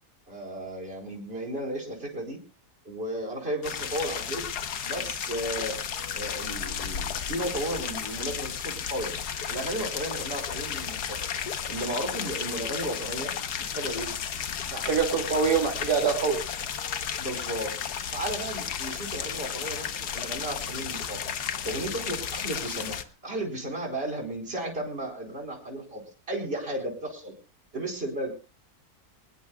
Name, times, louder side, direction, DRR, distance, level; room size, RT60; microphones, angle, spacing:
voice 1, 0.3-2.4 2.8-4.4 4.8-5.8 6.1-9.2 9.5-11.2 11.7-13.3 13.6-14.1 17.2-17.8 18.1-21.2 21.6-27.4 27.7-28.3, right 1 dB, 40° right, 0 dB, 4.6 m, -34 dB
sound 1, 3.6-23.0, left 8 dB, 80° left, 1.6 m, -33 dB
voice 2, 14.7-16.4, right 5 dB, 85° right, 2 dB, 3.2 m, -25 dB
23.5 x 20.0 x 2.3 m, 0.35 s
omnidirectional pair, 1.7 m